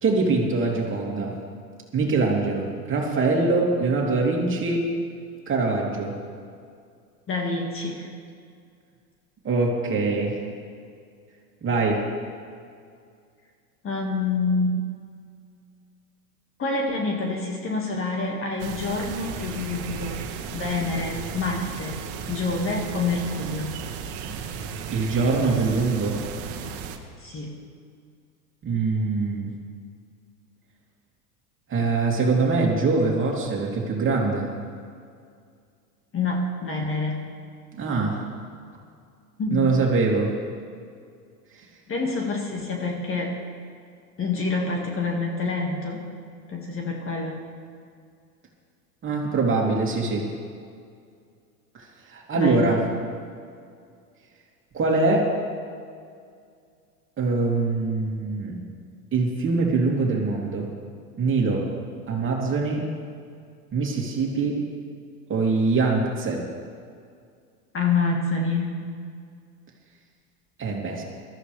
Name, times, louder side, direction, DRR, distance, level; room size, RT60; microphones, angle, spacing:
voice 1, 0.0-1.4 1.9-4.9 5.5-6.2 9.4-10.4 11.6-12.1 24.9-26.2 28.6-29.5 31.7-34.5 37.7-38.2 39.5-40.3 41.5-41.7 49.0-50.3 51.7-52.8 54.7-55.3 57.2-58.6 59.1-60.7 61.2-61.7 62.1-62.9 63.7-64.6 65.3-66.4 70.6-71.0, right 3 dB, 25° right, -1 dB, 2.9 m, -23 dB
voice 2, 7.3-8.1 13.8-14.8 16.6-20.2 20.5-23.8 27.2-27.6 36.1-37.3 39.4-39.7 41.9-43.4 44.2-46.1 46.5-47.4 52.3-52.8 67.7-68.8, left 3 dB, 25° left, 1 dB, 1.9 m, -27 dB
sound 1, 18.6-27.0, right 6 dB, 50° right, 1.7 m, -35 dB
21.5 x 14.0 x 3.4 m, 2.2 s
hypercardioid pair, 100°, 48 cm